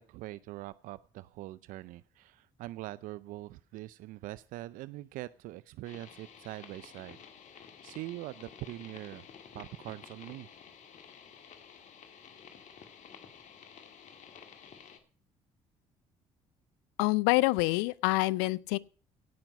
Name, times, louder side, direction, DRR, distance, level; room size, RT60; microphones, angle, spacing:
voice 1, 0.0-7.2 7.5-9.3 9.5-10.5, right 16 dB, 75° right, 17 dB, 0.5 m, -43 dB
sound 1, 5.8-15.0, left 7 dB, 60° left, 2.2 m, -52 dB
voice 2, 17.0-18.8, left 22 dB, 90° left, 23 dB, 0.4 m, -26 dB
17.0 x 6.0 x 5.2 m, 0.41 s
supercardioid pair, 70°, 14 cm